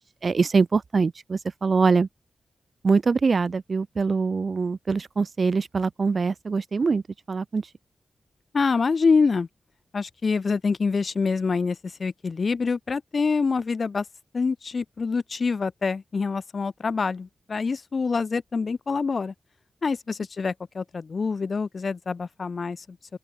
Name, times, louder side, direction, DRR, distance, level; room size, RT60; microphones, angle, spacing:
voice 1, 0.2-2.1 2.8-7.0 7.3-7.6, right 4 dB, 50° right, 0.7 m, -23 dB
voice 2, 8.5-9.5 9.9-14.0 14.3-19.3 19.8-23.0, left 4 dB, 50° left, 0.7 m, -26 dB
open air
wide cardioid pair, 95°, 0 cm